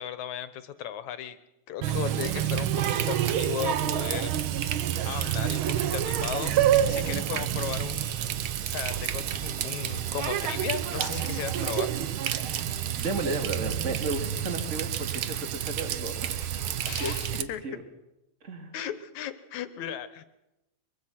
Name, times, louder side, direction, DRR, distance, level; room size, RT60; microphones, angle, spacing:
voice 1, 0.0-1.4 1.7-4.3 4.6-6.6 6.9-8.4 8.6-11.9 16.8-17.6 18.7-20.3, left 10 dB, 75° left, 13 dB, 2.5 m, -36 dB
Water tap faucet, 1.8-17.4, right 10 dB, 65° right, 1.3 m, -28 dB
voice 2, 13.0-16.4 17.0-17.8 18.4-18.7, right 2 dB, 25° right, 5 dB, 2.6 m, -34 dB
23.5 x 23.5 x 6.0 m, 0.93 s
omnidirectional pair, 3.3 m